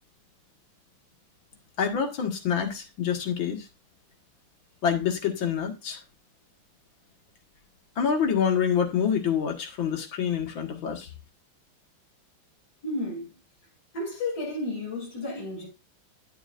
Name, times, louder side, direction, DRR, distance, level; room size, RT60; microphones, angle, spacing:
voice 1, 1.8-3.6 4.8-6.0 8.0-11.1, left 7 dB, 70° left, 2.3 m, -26 dB
voice 2, 12.8-13.3 13.9-15.7, left 2 dB, 50° left, 3.5 m, -32 dB
10.5 x 7.0 x 2.5 m
omnidirectional pair, 2.2 m